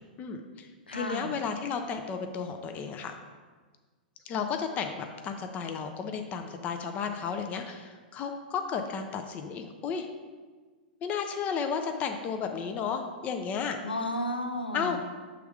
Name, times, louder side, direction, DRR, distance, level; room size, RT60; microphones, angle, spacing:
voice 1, 0.2-3.1 4.2-10.1 11.0-13.8 14.7-15.0, left 6 dB, 30° left, 6 dB, 0.5 m, -33 dB
voice 2, 0.9-1.3 13.8-15.0, left 1 dB, 90° left, 6 dB, 0.6 m, -33 dB
7.0 x 3.6 x 4.8 m, 1.4 s
figure-of-eight pair, 100°, 5 cm